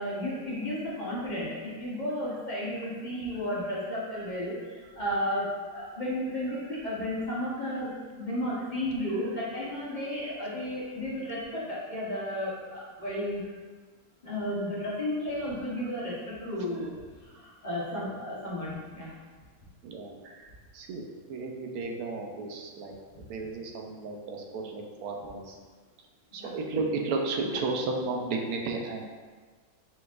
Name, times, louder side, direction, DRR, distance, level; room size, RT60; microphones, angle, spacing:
voice 1, 0.0-13.4 14.2-16.9 17.2-19.1 26.4-26.5, left 1 dB, 35° left, -8 dB, 1.0 m, -33 dB
voice 2, 19.8-21.0 21.3-22.9 23.3-25.6 26.3-29.0, right 3 dB, 85° right, 1 dB, 1.1 m, -33 dB
4.5 x 3.9 x 2.4 m, 1.5 s
omnidirectional pair, 1.5 m